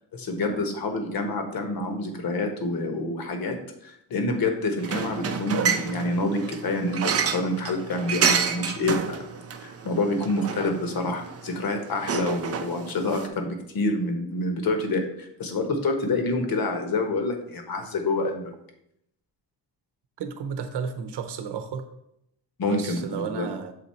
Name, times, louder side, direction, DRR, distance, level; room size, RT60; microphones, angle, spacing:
voice 1, 0.1-3.6 3.8-9.2 9.6-18.5 22.6-23.5, left 2 dB, 55° left, 5 dB, 1.2 m, -27 dB
sound 1, 4.8-13.3, right 6 dB, 35° right, 0.5 m, -29 dB
voice 2, 20.2-21.9 22.6-23.7, right 6 dB, 70° right, 7 dB, 0.8 m, -33 dB
7.1 x 4.0 x 4.3 m, 0.77 s
wide cardioid pair, 165°, 42 cm